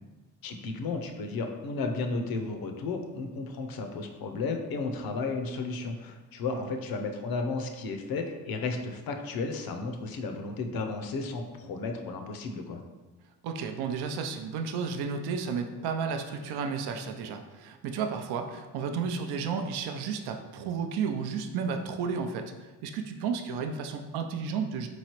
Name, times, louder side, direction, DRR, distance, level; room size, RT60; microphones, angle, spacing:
voice 1, 0.4-12.8, left 3 dB, 60° left, 4 dB, 0.6 m, -33 dB
voice 2, 13.4-24.9, right 5 dB, 70° right, 6 dB, 0.5 m, -32 dB
3.9 x 3.1 x 2.9 m, 1.2 s
cardioid pair, 85°, 40 cm